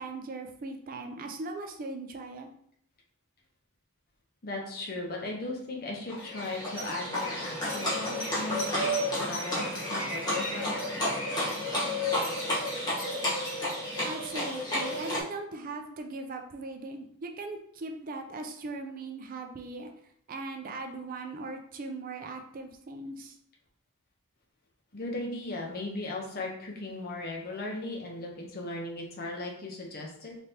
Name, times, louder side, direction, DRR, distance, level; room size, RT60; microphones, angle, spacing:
voice 1, 0.0-2.5 14.0-19.9 20.3-23.4, right 3 dB, 40° right, 5 dB, 0.4 m, -39 dB
voice 2, 4.4-8.9 9.2-10.7 24.9-30.4, left 2 dB, 45° left, 0 dB, 0.8 m, -37 dB
Livestock farm animals working animals, 6.1-15.2, left 1 dB, 20° left, 1.1 m, -31 dB
3.4 x 3.2 x 2.8 m, 0.68 s
head